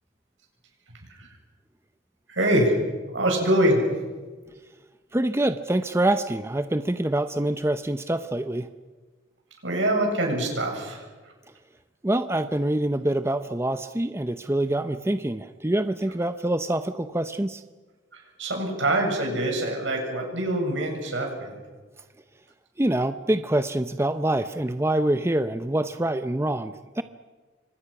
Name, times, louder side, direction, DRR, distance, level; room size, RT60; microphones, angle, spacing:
voice 1, 2.3-2.8 3.1-3.9 9.6-11.1 18.1-21.5, right 1 dB, 80° right, 1 dB, 7.4 m, -24 dB
voice 2, 5.1-8.7 12.0-17.6 22.8-27.0, right 1 dB, 15° right, 10 dB, 0.7 m, -25 dB
28.0 x 25.0 x 6.0 m, 1.3 s
head